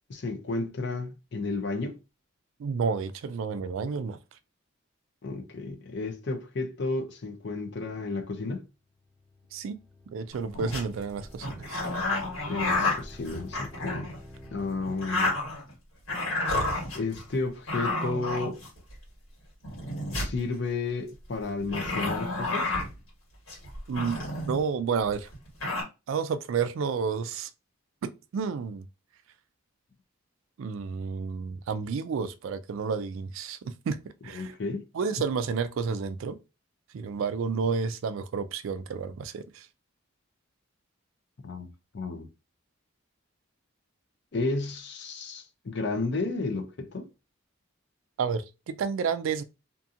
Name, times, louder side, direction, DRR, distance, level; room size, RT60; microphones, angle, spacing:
voice 1, 0.1-2.0 5.2-8.6 12.5-14.1 14.5-15.3 16.9-18.6 20.1-22.7 34.3-34.8 41.4-42.3 44.3-47.1, left 3 dB, 55° left, 0.5 m, -32 dB
voice 2, 2.6-4.2 9.5-9.8 10.1-11.8 23.9-24.2 24.5-25.3 26.1-27.5 28.0-28.8 30.6-33.6 33.9-34.0 34.2-34.5 34.9-36.4 36.9-39.7 48.2-49.4, right 5 dB, 70° right, 0.3 m, -30 dB
sound 1, 8.7-15.5, left 1 dB, 5° right, 0.6 m, -51 dB
sound 2, 10.3-10.8 11.4-14.2 14.8-15.7 16.1-17.2 17.7-18.9 19.6-20.4 21.7-22.9 23.5-24.6 25.1-25.2 25.3-25.8, left 2 dB, 75° left, 1.6 m, -30 dB
2.7 x 2.5 x 2.4 m
head